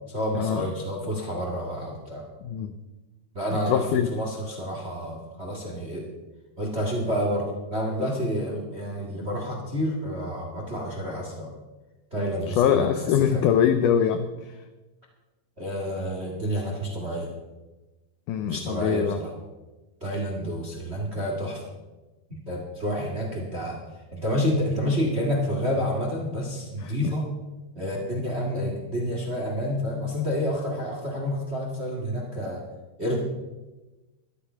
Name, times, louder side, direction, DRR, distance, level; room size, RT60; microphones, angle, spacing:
voice 1, 0.1-2.3 3.3-3.8 4.1-6.1 6.6-11.5 12.1-13.5 15.6-17.3 18.4-19.3 20.0-21.7 22.3-23.8 24.1-27.3 27.7-32.6 33.0-33.2, equal, 25° right, -1 dB, 1.5 m, -29 dB
voice 2, 3.7-4.1 12.5-14.5 18.3-19.2 26.8-27.1, left 8 dB, 85° left, 9 dB, 1.8 m, -23 dB
13.0 x 12.0 x 5.7 m, 1.1 s
omnidirectional pair, 4.5 m